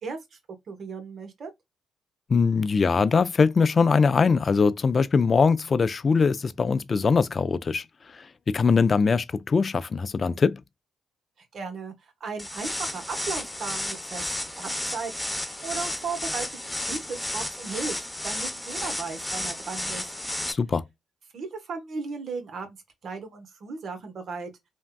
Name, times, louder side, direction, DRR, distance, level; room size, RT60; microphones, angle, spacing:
voice 1, 0.0-0.4 0.7-1.5 11.5-14.3 14.6-18.0 18.2-20.0 21.3-22.7 23.0-24.5, right 5 dB, 60° right, 0.9 m, -36 dB
voice 2, 2.3-7.8 8.1-10.6 20.5-20.8, left 5 dB, 45° left, 0.3 m, -22 dB
sound 1, 12.4-20.5, left 1 dB, 10° left, 0.7 m, -32 dB
3.5 x 2.2 x 2.2 m
supercardioid pair, 50°, 0 cm